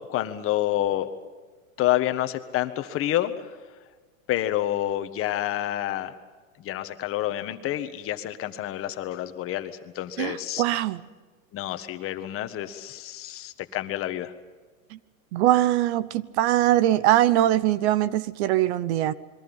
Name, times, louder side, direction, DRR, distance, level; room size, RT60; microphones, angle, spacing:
voice 1, 0.1-1.1 1.8-3.3 4.3-6.2 6.6-10.6 11.5-14.3, left 13 dB, 30° left, 9 dB, 1.6 m, -28 dB
voice 2, 10.2-11.0 15.3-19.1, right 13 dB, 55° right, 18 dB, 0.9 m, -22 dB
27.0 x 22.5 x 5.6 m, 1.4 s
supercardioid pair, 135°, 41 cm